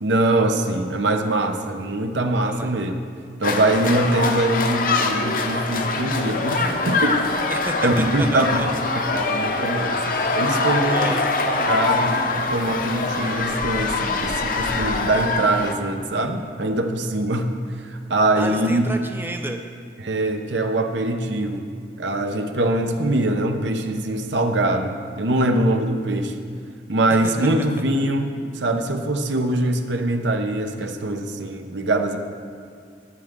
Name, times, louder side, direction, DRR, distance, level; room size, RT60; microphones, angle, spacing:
voice 1, 0.0-2.9 3.4-7.5 7.8-8.5 9.0-11.2 11.5-17.5 17.8-18.9 20.0-21.7 22.0-26.5 26.9-32.2, right 1 dB, 80° right, 6 dB, 0.9 m, -23 dB
sound 1, 3.4-15.7, left 3 dB, 50° left, 0.8 m, -24 dB
voice 2, 7.5-8.7 10.8-11.2 18.4-19.6 27.2-27.3, right 1 dB, 10° right, 5 dB, 0.5 m, -31 dB
18.5 x 8.0 x 3.7 m, 2.3 s
head